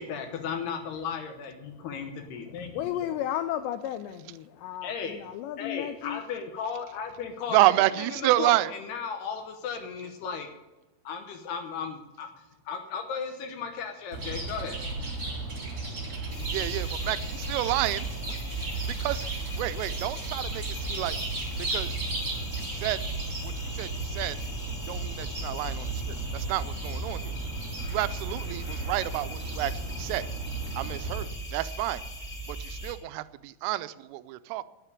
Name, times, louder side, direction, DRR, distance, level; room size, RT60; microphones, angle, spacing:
voice 1, 0.0-3.2 4.8-5.2 5.6-10.5 11.0-12.3 12.7-14.8, left 6 dB, 70° left, 2.6 m, -35 dB
voice 2, 2.7-6.2, left 11 dB, 90° left, 2.5 m, -33 dB
voice 3, 7.5-8.7 16.5-18.4 19.0-19.3 19.6-20.6 20.9-21.2 21.7-21.9 22.6-23.0 23.7-24.4 24.9-25.9 26.3-27.3 27.9-29.7 30.0-30.2 30.8-31.3 31.5-32.0 32.7-34.6, right 16 dB, 85° right, 3.1 m, -29 dB
Chirp tweet, 14.1-31.3, right 3 dB, 25° right, 2.7 m, -35 dB
sound 1, 16.3-32.9, right 1 dB, 10° left, 4.1 m, -39 dB
9.4 x 9.1 x 9.7 m
omnidirectional pair, 5.6 m